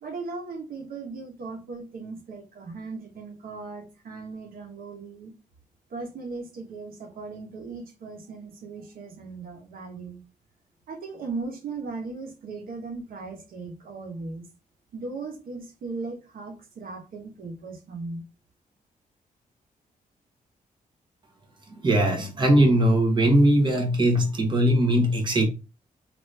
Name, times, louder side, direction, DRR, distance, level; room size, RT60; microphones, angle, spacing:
voice 1, 0.0-5.3 5.9-10.2 10.9-14.5 14.9-18.2, right 3 dB, 80° right, 1.0 m, -37 dB
voice 2, 21.8-25.5, right 1 dB, 30° right, 1.0 m, -20 dB
2.9 x 2.6 x 3.2 m
wide cardioid pair, 160°, 15 cm